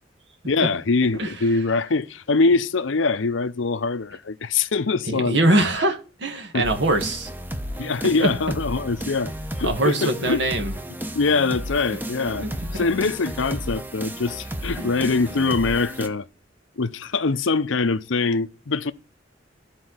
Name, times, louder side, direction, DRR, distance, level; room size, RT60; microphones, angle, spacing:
voice 1, 0.5-5.4 6.5-6.6 7.8-10.4 11.1-12.5 12.7-16.3 16.8-18.9, left 4 dB, 80° left, 0.7 m, -23 dB
voice 2, 5.1-7.3 8.2-8.3 9.6-11.1 12.3-12.9 14.8-14.9, right 1 dB, 65° right, 1.9 m, -23 dB
sound 1, 6.6-16.1, equal, 10° right, 0.9 m, -33 dB
13.0 x 4.6 x 7.9 m
head